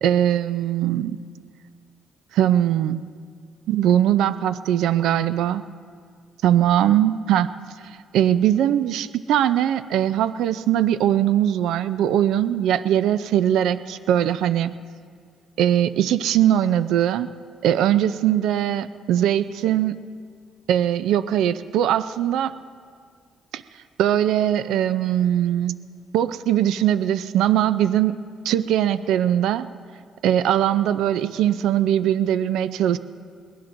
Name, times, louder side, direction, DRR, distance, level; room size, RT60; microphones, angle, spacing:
voice 1, 0.0-1.2 2.3-3.0 3.7-5.6 6.4-7.5 8.1-14.7 15.6-17.3 17.6-20.0 20.7-22.5 23.5-23.6 24.0-25.8 26.1-28.2 28.4-29.7 30.2-33.0, right 11 dB, 85° right, 13 dB, 0.4 m, -20 dB
22.5 x 19.5 x 2.6 m, 2.1 s
cardioid pair, 115°, 0 cm